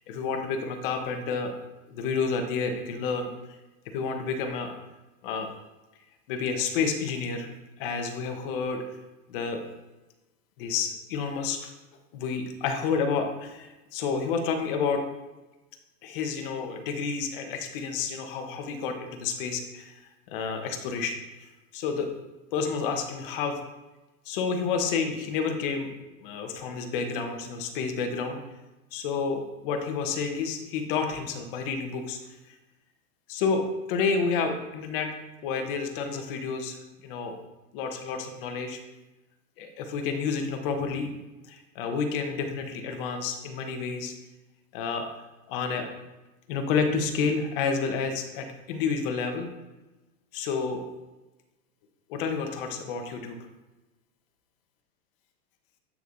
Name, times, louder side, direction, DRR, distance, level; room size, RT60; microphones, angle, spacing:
voice 1, 0.0-1.5 1.9-3.3 3.8-4.7 5.2-5.5 6.3-7.5 7.8-8.8 9.3-9.6 10.6-11.7 12.1-15.0 16.0-22.1 22.5-23.6 24.2-25.9 26.2-28.4 28.9-32.2 32.5-32.6 33.3-35.1 35.4-36.8 37.0-37.4 37.7-38.8 39.6-41.2 41.5-44.1 44.7-45.1 45.5-45.9 46.5-49.5 50.3-50.8 52.1-53.4, left 5 dB, 40° left, 6 dB, 1.0 m, -30 dB
8.5 x 6.5 x 2.6 m, 1.1 s
supercardioid pair, 155°, 44 cm